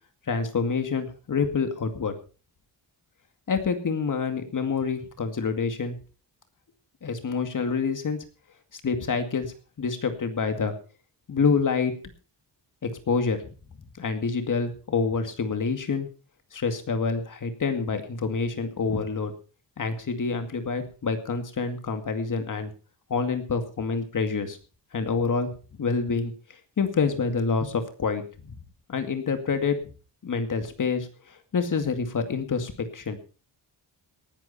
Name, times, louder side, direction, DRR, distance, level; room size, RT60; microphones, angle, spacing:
voice 1, 0.3-2.1 3.5-5.9 7.0-8.2 8.7-9.5 9.8-10.7 11.3-11.9 12.8-13.4 14.0-16.1 16.5-19.3 19.8-22.7 23.1-24.6 24.9-25.5 25.8-26.3 26.8-28.2 28.9-29.8 30.2-33.2, left 5 dB, 50° left, 8 dB, 2.3 m, -27 dB
19.0 x 11.0 x 4.3 m, 0.35 s
wide cardioid pair, 165°, 41 cm